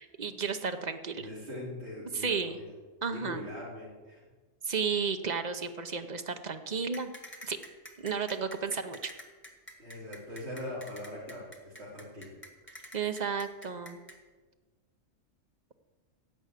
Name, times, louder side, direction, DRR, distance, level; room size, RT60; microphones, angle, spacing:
voice 1, 0.0-1.3 2.1-2.6 3.0-3.4 4.6-7.1 7.4-7.6 8.0-9.1 12.9-14.0, right 5 dB, 40° right, 8 dB, 0.8 m, -33 dB
voice 2, 1.2-2.7 3.1-4.2 9.8-12.3, left 1 dB, 55° right, -7 dB, 4.2 m, -41 dB
sound 1, 6.9-14.2, equal, 10° left, 1.3 m, -47 dB
11.0 x 8.1 x 8.2 m, 1.3 s
omnidirectional pair, 1.3 m